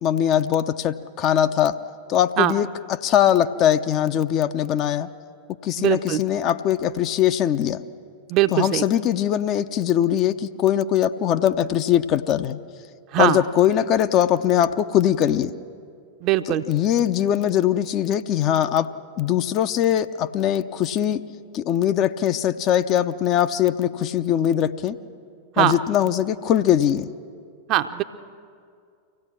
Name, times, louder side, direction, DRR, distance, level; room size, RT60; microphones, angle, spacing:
voice 1, 0.0-1.8 2.1-2.7 3.0-5.1 5.6-7.8 8.5-12.6 13.2-15.5 16.7-18.9 19.2-21.2 21.5-25.0 25.6-27.1, left 10 dB, 35° left, 10 dB, 0.6 m, -21 dB
voice 2, 5.8-6.2 8.3-9.0 13.1-13.4 16.2-16.6 25.5-25.8 27.7-28.0, right 13 dB, 40° right, 9 dB, 0.7 m, -21 dB
24.5 x 16.5 x 7.4 m, 2.3 s
figure-of-eight pair, 90°, 0 cm